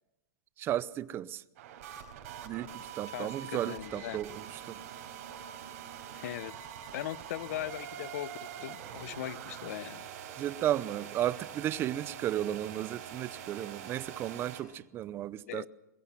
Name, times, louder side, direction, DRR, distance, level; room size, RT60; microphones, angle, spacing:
voice 1, 0.6-1.4 2.4-4.8 10.4-15.7, right 12 dB, 25° right, 0.7 m, -34 dB
sound 1, 1.6-14.6, right 9 dB, 55° right, 5.0 m, -44 dB
voice 2, 3.1-4.2 6.1-6.6 6.9-10.1 15.5-15.7, left 14 dB, 60° left, 0.9 m, -39 dB
22.5 x 21.0 x 5.9 m
hypercardioid pair, 145°, 9 cm